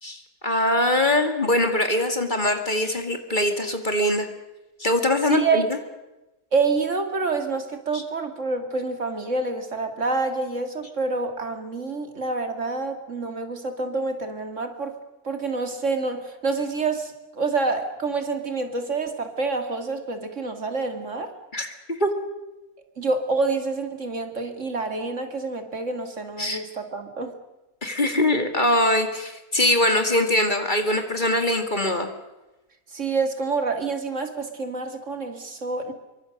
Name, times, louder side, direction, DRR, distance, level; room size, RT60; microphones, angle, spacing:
voice 1, 0.0-4.3 4.8-5.7 7.9-8.0 21.5-22.2 26.4-26.6 27.8-32.1, left 1 dB, 30° left, 6 dB, 2.4 m, -22 dB
voice 2, 5.2-5.7 6.5-14.9 15.2-21.3 23.0-27.3 32.9-35.9, right 4 dB, 55° right, 6 dB, 2.5 m, -27 dB
27.0 x 24.0 x 6.6 m, 1.0 s
omnidirectional pair, 1.6 m